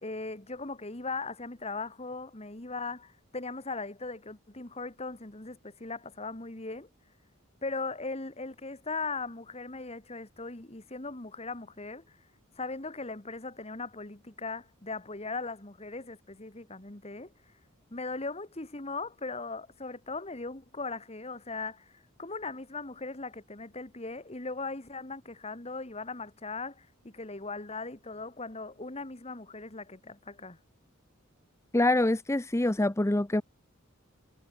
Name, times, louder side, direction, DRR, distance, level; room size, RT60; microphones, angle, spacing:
voice 1, 0.0-6.9 7.6-12.1 12.6-17.3 17.9-30.6, left 3 dB, 30° left, 1.9 m, -39 dB
voice 2, 31.7-33.4, left 1 dB, 15° left, 0.6 m, -25 dB
head